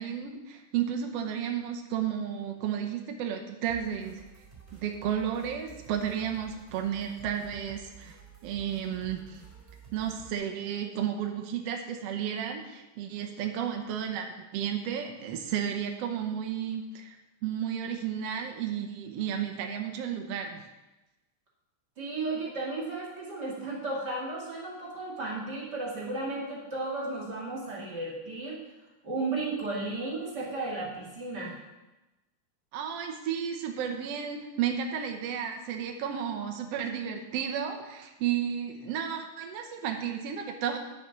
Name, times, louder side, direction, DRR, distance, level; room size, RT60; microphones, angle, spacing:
voice 1, 0.0-4.2 4.8-8.2 8.4-9.4 9.9-14.3 14.5-17.2 17.4-20.6 32.7-40.8, right 8 dB, 70° right, 3 dB, 1.6 m, -32 dB
sound 1, 3.7-10.3, right 7 dB, 20° right, 4.2 m, -51 dB
voice 2, 22.0-28.6 29.0-31.6, right 2 dB, 35° right, -5 dB, 2.5 m, -34 dB
10.0 x 7.0 x 5.8 m, 1.0 s
omnidirectional pair, 3.6 m